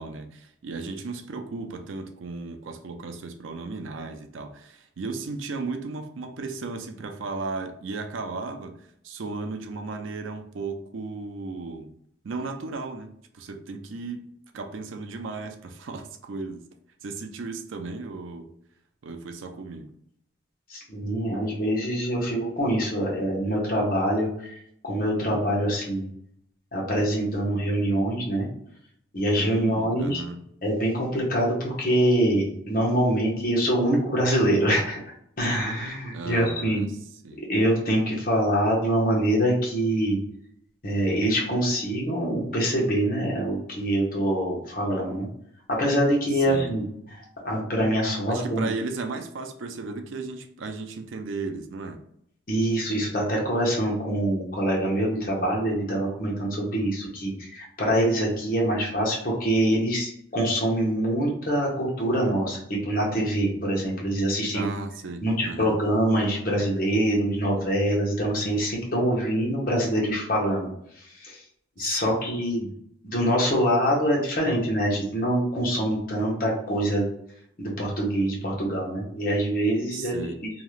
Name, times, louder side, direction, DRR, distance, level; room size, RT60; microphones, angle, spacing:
voice 1, 0.0-11.9 12.2-16.7 17.0-18.5 19.0-19.9 29.4-30.4 36.1-36.9 37.2-37.4 46.3-46.7 48.3-52.0 64.5-65.8 71.8-72.1 79.9-80.4, right 3 dB, 85° right, 0.4 m, -35 dB
voice 2, 20.7-24.3 24.8-26.0 26.7-28.5 29.1-30.2 30.6-35.0 35.4-36.8 37.5-40.2 40.8-45.3 45.8-46.8 47.4-48.7 52.5-64.7 65.2-70.7 71.2-71.4 71.8-72.7 73.0-77.1 77.6-80.5, right 1 dB, 45° left, 1.0 m, -24 dB
2.8 x 2.3 x 3.1 m
head